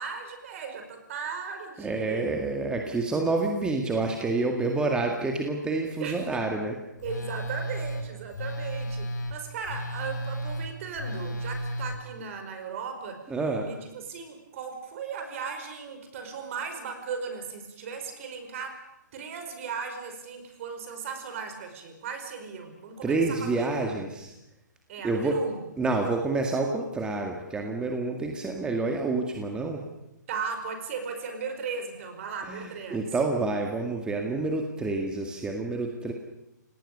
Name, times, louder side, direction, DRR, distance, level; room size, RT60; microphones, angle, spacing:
voice 1, 0.0-2.4 6.0-6.4 7.0-13.3 13.6-18.8 19.1-24.1 24.9-25.7 30.3-33.1, right 5 dB, 45° right, 6 dB, 5.1 m, -37 dB
voice 2, 1.8-6.8 13.3-13.7 23.0-24.3 25.0-25.4 25.8-29.8 32.5-36.1, right 3 dB, 10° right, 2 dB, 2.0 m, -28 dB
Telephone, 7.0-12.0, equal, 65° left, 4.4 m, -33 dB
29.5 x 18.5 x 6.8 m, 0.89 s
hypercardioid pair, 140°, 10 cm